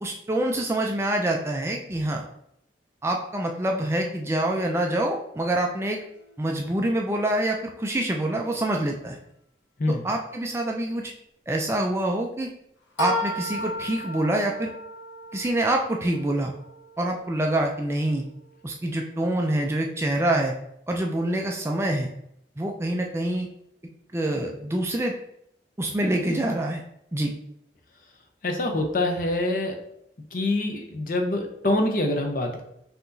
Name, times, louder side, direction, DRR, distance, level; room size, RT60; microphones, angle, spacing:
voice 1, 0.0-2.2 3.0-6.0 6.4-9.2 9.9-11.1 11.5-12.5 13.0-14.7 15.3-16.5 17.0-18.2 18.6-20.5 20.9-22.1 22.6-23.5 24.1-25.1 25.8-26.8 27.1-27.3, right 1 dB, 15° right, 2 dB, 0.3 m, -26 dB
sound 1, 5.9-6.3 13.0-18.7, equal, 85° left, 1.0 m, -35 dB
voice 2, 28.4-29.8 30.3-32.6, left 2 dB, 50° left, 3 dB, 0.7 m, -25 dB
5.7 x 2.9 x 2.6 m, 0.76 s
head